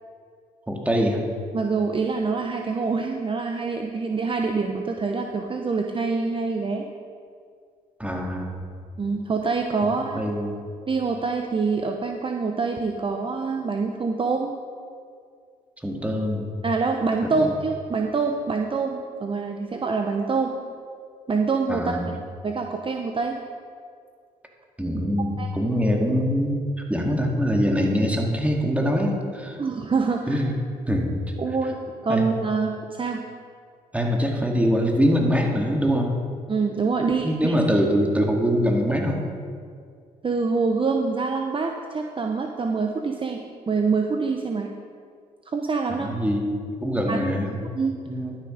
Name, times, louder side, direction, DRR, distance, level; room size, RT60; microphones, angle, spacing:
voice 1, 0.7-1.2 8.0-8.6 10.2-10.6 15.8-16.4 21.7-22.1 24.8-26.6 26.9-29.6 30.3-30.5 30.9-31.1 32.1-32.3 33.9-36.2 37.2-39.2 45.9-47.6 48.1-48.4, equal, 10° right, 1 dB, 2.0 m, -23 dB
voice 2, 1.5-6.8 9.0-10.3 10.9-14.5 16.6-20.5 21.3-22.0 22.4-23.4 25.4-25.5 29.6-30.4 31.4-31.8 32.0-33.2 36.5-37.6 40.2-44.7 45.5-46.1 47.1-47.2 47.7-48.0, right 4 dB, 35° right, 3 dB, 0.8 m, -25 dB
11.5 x 7.0 x 5.1 m, 2.2 s
supercardioid pair, 65°, 16 cm